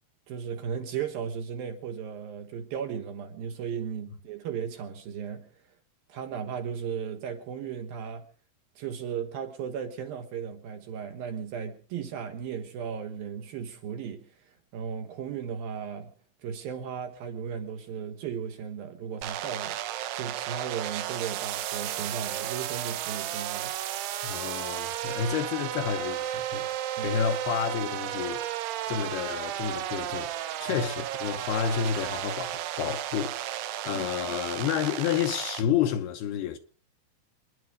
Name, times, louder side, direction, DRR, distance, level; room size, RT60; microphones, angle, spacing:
voice 1, 0.3-5.6 6.1-8.3 8.8-16.1 16.4-19.8 20.1-23.7 27.0-27.2 30.7-30.8 33.9-34.0, right 7 dB, 65° right, 2.6 m, -36 dB
sound 1, 19.2-35.6, right 12 dB, 90° right, 3.5 m, -33 dB
voice 2, 24.2-26.7 27.0-28.4 28.9-36.6, left 8 dB, 75° left, 2.7 m, -30 dB
27.0 x 10.5 x 5.0 m
omnidirectional pair, 5.2 m